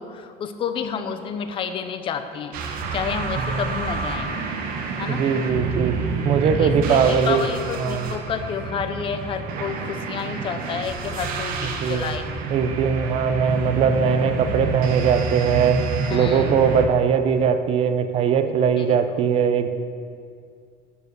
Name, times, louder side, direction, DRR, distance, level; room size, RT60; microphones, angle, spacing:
voice 1, 0.0-2.6 2.9-4.3 5.0-5.3 6.6-12.3 16.1-16.7 18.8-19.0, left 7 dB, 30° left, 9 dB, 0.5 m, -30 dB
sound 1, 2.5-16.9, right 4 dB, 55° right, 1.0 m, -28 dB
voice 2, 5.1-5.9 6.2-7.5 7.8-8.1 11.8-12.1 12.5-15.8 16.1-19.7, right 6 dB, 35° right, 9 dB, 0.5 m, -20 dB
11.5 x 4.9 x 6.6 m, 2.3 s
cardioid pair, 175°, 18 cm